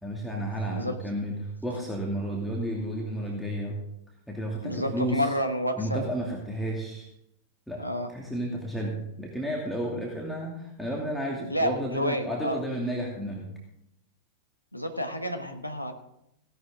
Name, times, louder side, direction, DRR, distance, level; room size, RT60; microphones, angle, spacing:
voice 1, 0.0-1.3 1.6-3.8 4.3-5.3 5.8-7.1 7.7-7.8 8.1-13.4, right 1 dB, ahead, -3 dB, 2.5 m, -32 dB
voice 2, 4.6-6.0 7.8-8.1 11.5-12.6 14.7-15.9, equal, 90° left, 6 dB, 1.3 m, -29 dB
17.0 x 11.5 x 3.7 m, 0.80 s
figure-of-eight pair, 90°, 0 cm